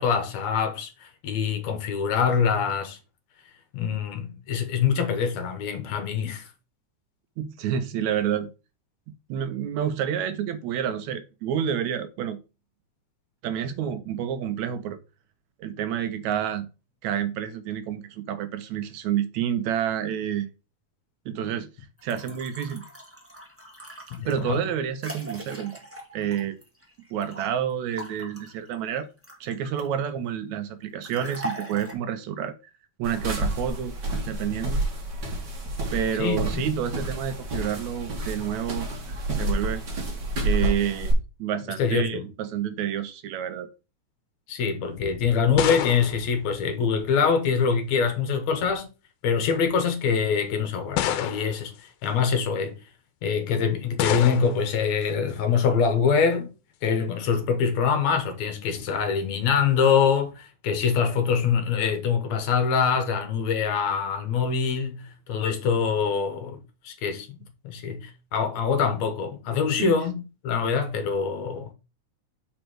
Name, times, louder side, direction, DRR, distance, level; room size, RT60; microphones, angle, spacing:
voice 1, 0.0-3.0 3.7-6.5 24.1-24.6 36.2-36.7 41.8-42.3 44.5-48.9 49.2-51.7 52.0-52.8 53.2-56.5 56.8-66.6 66.8-67.4 67.6-71.7, left 6 dB, 70° left, 2.2 m, -24 dB
voice 2, 7.4-8.5 9.3-12.4 13.4-15.0 15.6-16.7 17.0-20.5 21.3-21.7 22.0-22.8 24.2-25.7 26.1-26.6 27.1-29.1 29.4-32.6 33.0-33.9 34.3-34.8 35.9-39.0 39.4-39.8 40.4-41.1 41.4-43.7 69.7-69.9, right 9 dB, 75° right, 1.9 m, -29 dB
sound 1, 22.0-27.5 28.0-30.1 31.0-31.9, right 1 dB, 10° right, 0.7 m, -40 dB
sound 2, 33.0-41.1, right 1 dB, 40° right, 2.0 m, -29 dB
sound 3, 45.0-47.3 48.4-48.8 49.6-49.7 51.0-51.8 54.0-54.7, left 10 dB, 90° left, 2.1 m, -29 dB
5.3 x 4.5 x 6.0 m
omnidirectional pair, 3.5 m